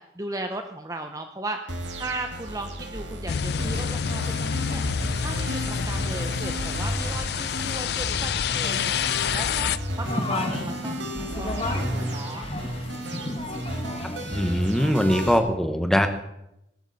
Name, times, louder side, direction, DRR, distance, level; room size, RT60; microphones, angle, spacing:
voice 1, 0.0-4.8 5.2-13.1, right 2 dB, 20° right, 6 dB, 0.7 m, -37 dB
sound 1, 1.7-15.4, right 1 dB, 75° right, 2.0 m, -33 dB
sound 2, 3.3-9.8, left 7 dB, 55° left, 0.4 m, -28 dB
sound 3, 10.0-15.3, left 2 dB, 30° left, 1.4 m, -33 dB
voice 2, 14.3-16.1, equal, 5° left, 7 dB, 1.1 m, -22 dB
18.5 x 13.0 x 4.1 m, 0.84 s
head